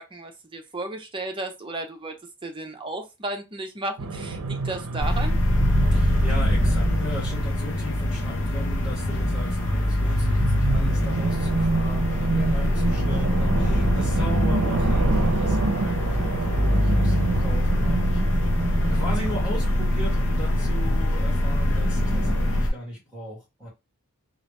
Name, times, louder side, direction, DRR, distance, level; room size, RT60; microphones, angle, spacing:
voice 1, 0.0-2.2 2.4-5.4, right 2 dB, 25° right, 0.7 m, -34 dB
sound 1, 4.0-22.6, right 3 dB, 65° right, 0.7 m, -29 dB
sound 2, 5.0-22.7, left 1 dB, 55° left, 0.8 m, -23 dB
voice 2, 5.9-18.2 18.9-23.7, equal, 5° right, 2.3 m, -37 dB
4.0 x 2.5 x 3.3 m
head